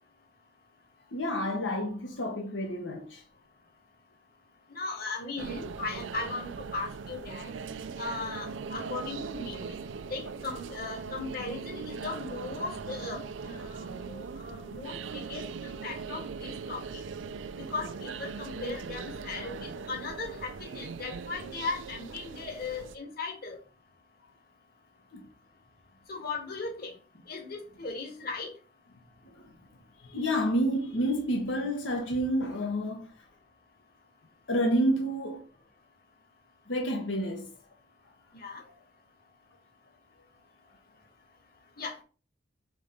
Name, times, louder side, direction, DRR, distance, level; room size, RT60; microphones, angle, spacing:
voice 1, 1.1-3.2 25.1-25.3 30.0-33.1 34.5-35.4 36.7-37.5, equal, 85° left, 1.2 m, -29 dB
voice 2, 4.7-7.5 8.0-9.8 10.1-17.0 17.7-23.6 26.1-27.0 27.3-28.5 38.4-38.6 41.8-42.0, left 3 dB, 55° left, 1.8 m, -38 dB
sound 1, 5.4-23.0, right 5 dB, 90° right, 0.5 m, -40 dB
5.1 x 3.9 x 5.0 m
head